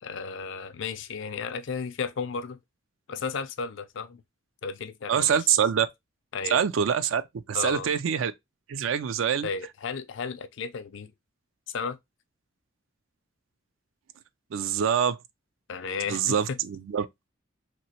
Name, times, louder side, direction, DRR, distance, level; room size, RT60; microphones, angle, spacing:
voice 1, 0.0-2.6 3.1-4.2 4.6-5.5 6.3-6.7 7.5-7.9 9.4-11.1 11.7-12.0 15.7-16.6, left 5 dB, 65° left, 0.4 m, -34 dB
voice 2, 5.1-5.9 6.5-7.2 7.5-8.3 8.7-9.5 14.5-15.2 16.1-17.1, right 8 dB, 75° right, 0.4 m, -25 dB
3.0 x 2.9 x 2.8 m
head